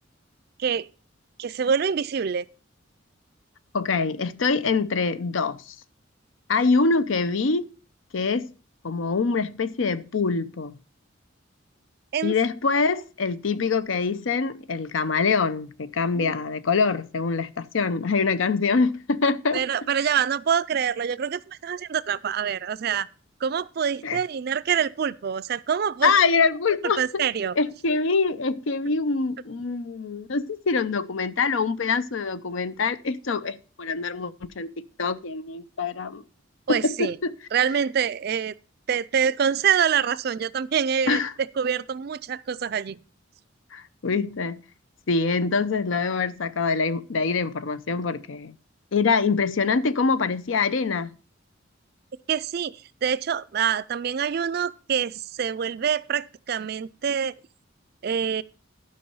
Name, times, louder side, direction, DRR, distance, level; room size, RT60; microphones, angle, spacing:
voice 1, 1.4-2.5 12.1-12.3 16.1-16.3 19.5-23.1 23.4-26.1 27.0-27.5 36.7-37.2 37.5-38.5 38.9-43.0 52.3-57.3 58.0-58.4, right 7 dB, 50° right, 0.4 m, -25 dB
voice 2, 3.7-5.7 6.5-7.7 8.1-8.5 8.8-10.7 12.2-19.6 24.0-24.2 26.0-27.2 27.6-34.7 35.0-36.2 36.7-37.3 41.1-41.3 43.7-44.6 45.1-48.5 48.9-51.1, left 4 dB, 80° left, 0.6 m, -24 dB
11.5 x 5.4 x 5.4 m
head